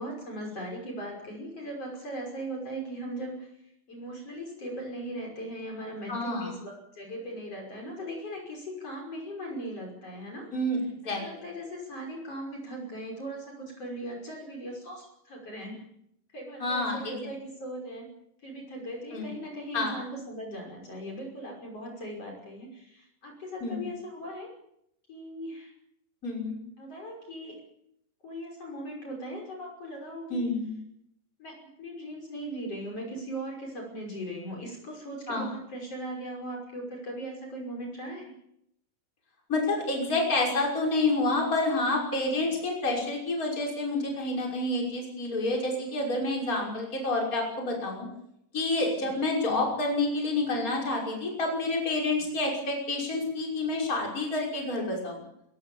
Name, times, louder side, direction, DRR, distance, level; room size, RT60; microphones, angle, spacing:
voice 1, 0.0-3.5 3.9-10.5 11.0-15.8 16.3-18.1 18.4-24.5 25.1-25.7 26.8-27.6 28.2-30.5 31.4-38.3 48.9-49.1, right 1 dB, 45° left, 1 dB, 6.7 m, -39 dB
voice 2, 6.1-6.5 10.5-10.8 11.0-11.2 16.6-17.1 19.1-19.3 19.7-19.9 23.6-23.8 26.2-26.6 30.3-30.7 35.3-35.5 39.5-48.1 48.5-55.2, left 2 dB, 25° left, -1 dB, 6.1 m, -28 dB
22.5 x 21.5 x 7.2 m, 0.77 s
omnidirectional pair, 4.0 m